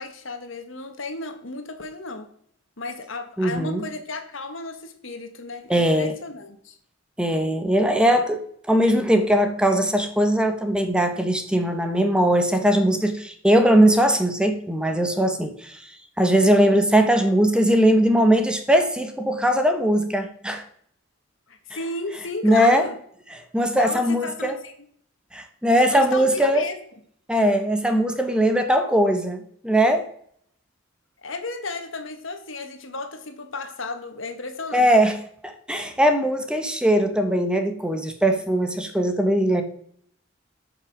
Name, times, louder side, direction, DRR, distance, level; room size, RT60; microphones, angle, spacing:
voice 1, 0.0-2.3 2.8-6.8 21.5-23.0 23.7-24.7 25.7-26.8 31.2-34.9, left 3 dB, 70° left, 7 dB, 1.6 m, -34 dB
voice 2, 3.4-3.8 5.7-6.1 7.2-8.4 8.7-15.8 16.2-20.6 22.4-22.9 23.3-24.6 25.3-26.7 27.3-30.1 34.7-39.6, equal, 5° right, 6 dB, 1.0 m, -20 dB
12.0 x 6.0 x 6.0 m, 0.63 s
head